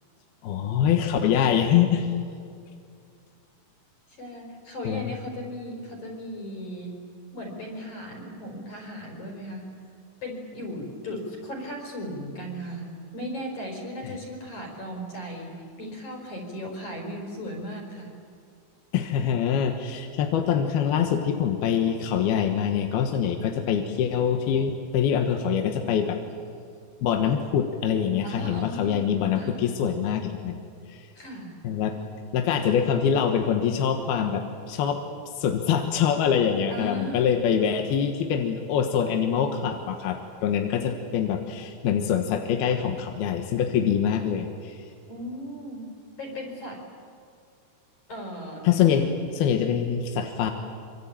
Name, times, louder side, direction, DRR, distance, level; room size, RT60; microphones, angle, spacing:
voice 1, 0.4-2.1 4.9-5.1 14.0-14.1 18.9-26.2 27.0-30.6 30.9-31.1 31.6-32.0 32.3-35.0 35.3-44.8 48.6-49.1 49.3-50.5, left 8 dB, 70° left, 5 dB, 3.0 m, -24 dB
voice 2, 4.2-7.0 7.3-9.7 10.2-18.2 28.2-29.1 29.4-29.6 31.1-31.6 36.7-37.3 45.1-45.9 46.2-46.8 48.1-48.7 49.0-49.1, equal, 45° left, 1 dB, 5.9 m, -37 dB
26.0 x 25.0 x 8.8 m, 2.3 s
omnidirectional pair, 5.0 m